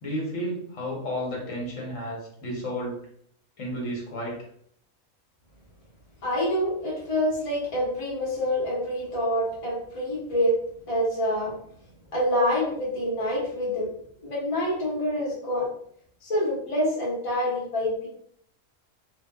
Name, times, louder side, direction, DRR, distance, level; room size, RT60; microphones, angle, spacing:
voice 1, 0.0-3.0 3.6-4.4, equal, 60° left, -2 dB, 1.2 m, -32 dB
voice 2, 6.2-10.5 10.9-11.6 12.1-13.9 14.2-15.7 16.2-18.1, equal, 25° left, -6 dB, 0.8 m, -26 dB
2.9 x 2.2 x 2.2 m, 0.65 s
omnidirectional pair, 1.5 m